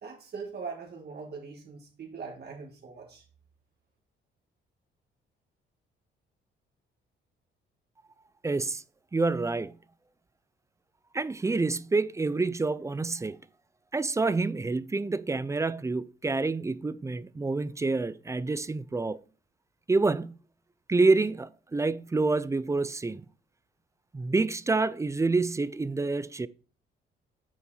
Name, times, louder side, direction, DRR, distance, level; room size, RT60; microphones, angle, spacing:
voice 1, 0.0-3.2, right 5 dB, 55° right, 1.9 m, -41 dB
voice 2, 8.4-8.8 9.1-9.7 11.1-13.4 13.9-19.2 19.9-20.4 20.9-23.2 24.1-26.5, right 3 dB, 15° right, 0.4 m, -27 dB
8.6 x 4.4 x 4.2 m
cardioid pair, 90°, 20 cm